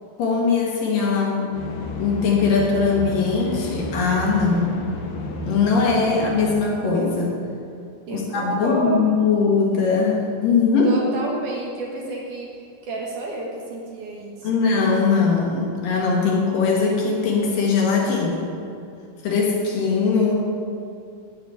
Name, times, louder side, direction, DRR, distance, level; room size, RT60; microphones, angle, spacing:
voice 1, 0.2-1.5 2.0-4.8 5.4-7.4 8.1-10.9 14.4-18.5 19.2-20.5, left 4 dB, 60° left, -2 dB, 3.3 m, -20 dB
sound 1, 1.5-6.6, left 1 dB, 85° left, 3.4 m, -32 dB
voice 2, 8.1-9.1 10.8-14.6, right 2 dB, 60° right, -2 dB, 2.5 m, -30 dB
9.3 x 8.8 x 9.4 m, 2.4 s
omnidirectional pair, 4.6 m